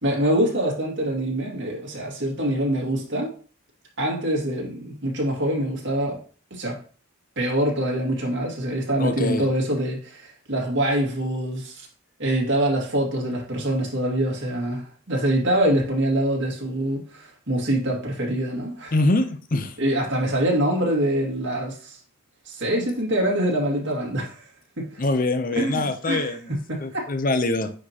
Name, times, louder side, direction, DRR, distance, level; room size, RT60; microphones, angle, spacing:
voice 1, 0.0-3.3 4.0-6.2 6.5-6.8 7.4-11.9 12.2-18.9 19.8-22.0 22.5-24.4 24.8-25.0 25.6-27.1, right 1 dB, 55° right, -1 dB, 2.2 m, -25 dB
voice 2, 9.0-9.5 18.9-19.8 25.0-26.5 26.8-27.7, left 2 dB, 40° left, 8 dB, 0.6 m, -24 dB
9.5 x 4.4 x 2.9 m, 0.41 s
head